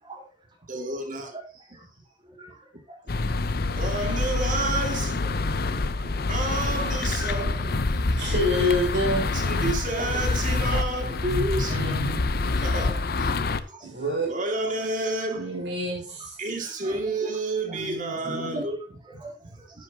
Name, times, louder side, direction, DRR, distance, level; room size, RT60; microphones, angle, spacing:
voice 1, 0.7-1.3 3.7-8.3 9.0-11.8 12.6-13.6 14.2-15.5 16.4-19.5, right 2 dB, 45° right, 2.4 m, -31 dB
voice 2, 1.3-1.8 2.2-2.6 2.9-3.0 3.3-3.4 4.0-4.1 5.2-5.6 6.0-6.1 7.1-7.2 8.1-8.2 9.7-9.8 10.7-10.8 12.5-12.6 13.7-13.9 16.6-17.3 17.7-17.8 18.2-18.7 19.0-19.8, right 1 dB, 25° right, 3.2 m, -43 dB
sound 1, 3.1-13.6, left 3 dB, 60° left, 0.7 m, -26 dB
voice 3, 8.2-9.2 11.7-12.3 13.8-14.3 15.4-16.4 17.7-18.6, left 1 dB, 75° right, 5.7 m, -28 dB
11.0 x 10.0 x 2.9 m
head